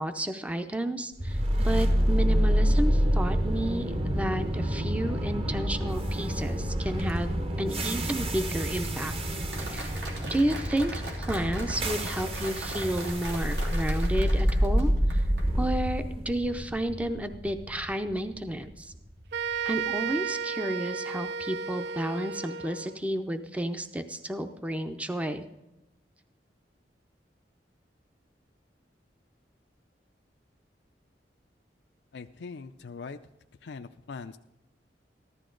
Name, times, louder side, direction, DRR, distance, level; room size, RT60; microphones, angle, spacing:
voice 1, 0.0-9.1 9.7-9.8 10.3-15.3 15.6-18.9 19.6-25.5, right 1 dB, 10° right, 8 dB, 0.5 m, -31 dB
sound 1, 1.2-19.3, equal, 35° right, 0.9 m, -28 dB
Applause, 9.5-15.4, right 1 dB, 80° right, 3.1 m, -40 dB
sound 2, 19.3-23.0, right 6 dB, 65° right, 0.4 m, -33 dB
voice 2, 32.1-33.2 33.6-34.4, left 4 dB, 75° left, 7 dB, 0.4 m, -41 dB
14.5 x 12.5 x 3.8 m, 0.97 s
head